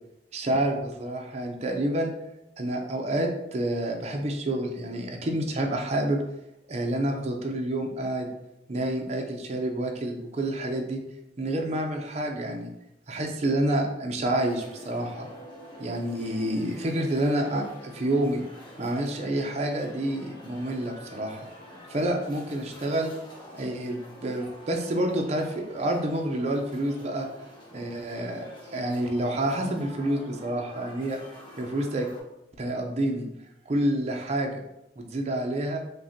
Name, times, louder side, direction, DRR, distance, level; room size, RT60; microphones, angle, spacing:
voice 1, 0.3-2.1 2.6-6.2 6.7-8.3 8.7-11.0 11.4-12.7 13.1-15.3 15.8-18.4 18.8-21.5 21.9-23.1 23.5-27.3 27.7-31.2 31.6-32.1 32.6-33.3 33.7-34.6 35.0-35.8, right 1 dB, 35° right, 2 dB, 0.5 m, -28 dB
sound 1, 14.4-32.2, equal, 25° left, 0.8 m, -47 dB
5.0 x 2.1 x 2.8 m, 0.87 s
head